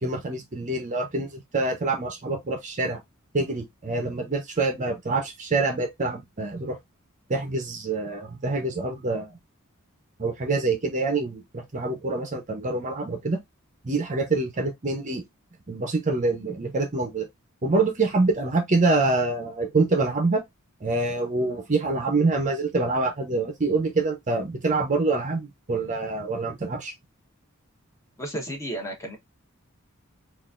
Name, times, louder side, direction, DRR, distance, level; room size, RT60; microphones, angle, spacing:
voice 1, 0.0-3.0 3.3-6.8 7.3-9.3 10.2-13.4 13.8-15.2 15.7-17.3 17.6-20.4 20.8-26.9, right 3 dB, 35° right, 0.7 m, -26 dB
voice 2, 28.2-29.2, right 1 dB, 15° left, 1.1 m, -32 dB
3.9 x 2.6 x 2.4 m
head